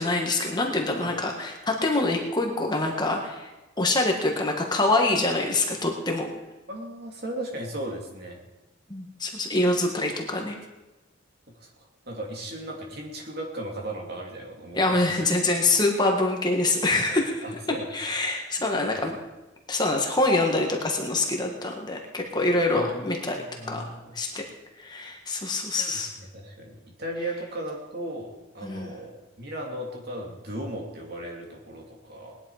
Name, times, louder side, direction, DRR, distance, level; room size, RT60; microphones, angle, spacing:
voice 1, 0.0-3.5 3.8-6.3 8.9-10.6 14.7-17.4 17.9-19.2 19.7-23.9 24.1-24.4 24.8-26.1 28.6-28.9, left 2 dB, 20° left, 2 dB, 1.5 m, -25 dB
voice 2, 6.7-8.4 11.6-15.4 17.4-17.9 18.9-19.1 22.7-23.0 23.4-24.1 25.8-26.0 26.3-32.4, right 1 dB, 50° right, 0 dB, 2.9 m, -36 dB
19.5 x 10.5 x 4.9 m, 1.1 s
head